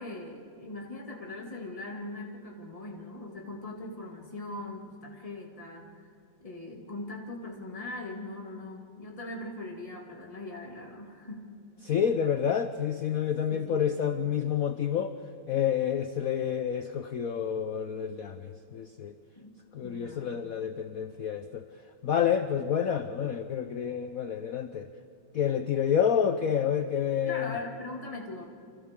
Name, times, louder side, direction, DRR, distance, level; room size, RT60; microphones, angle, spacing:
voice 1, 0.0-5.9 6.4-11.5 13.5-13.9 19.4-20.3 27.2-28.4, left 2 dB, 15° left, -1 dB, 2.3 m, -40 dB
voice 2, 11.8-15.1 15.5-19.1 19.7-21.7 22.0-24.9 25.3-27.5, left 8 dB, 70° left, 9 dB, 0.8 m, -29 dB
29.5 x 25.5 x 3.7 m, 2.6 s
omnidirectional pair, 2.3 m